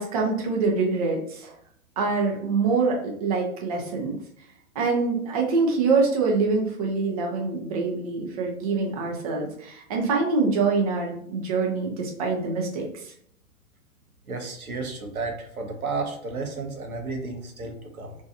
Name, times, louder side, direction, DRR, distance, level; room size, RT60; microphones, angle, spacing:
voice 1, 0.0-1.5 2.0-4.2 4.8-13.1, right 4 dB, 30° right, -1 dB, 0.4 m, -25 dB
voice 2, 14.3-18.2, right 3 dB, 80° right, 3 dB, 0.8 m, -32 dB
2.7 x 2.2 x 2.5 m, 0.67 s
figure-of-eight pair, 120°, 42 cm